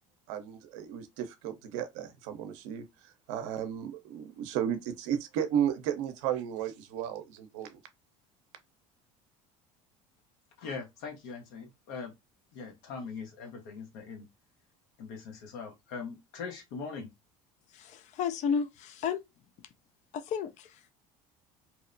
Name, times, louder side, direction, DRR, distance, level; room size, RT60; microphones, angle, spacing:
voice 1, 0.3-2.8 3.3-7.8, right 9 dB, 75° right, 0.6 m, -34 dB
voice 2, 10.6-12.1 12.5-14.3 15.0-17.1, left 5 dB, 70° left, 0.9 m, -41 dB
voice 3, 17.7-19.2 20.1-20.9, left 6 dB, 50° left, 0.4 m, -32 dB
2.8 x 2.0 x 2.5 m
supercardioid pair, 85°, 16 cm